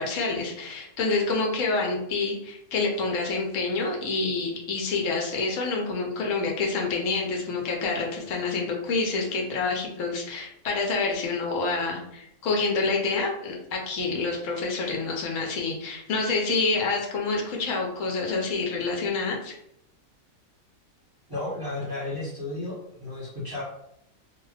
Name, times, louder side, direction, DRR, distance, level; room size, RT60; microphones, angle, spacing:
voice 1, 0.0-19.5, left 3 dB, 65° left, 0 dB, 1.0 m, -27 dB
voice 2, 21.3-23.6, left 2 dB, 15° right, -10 dB, 1.0 m, -33 dB
2.5 x 2.4 x 3.2 m, 0.75 s
omnidirectional pair, 1.5 m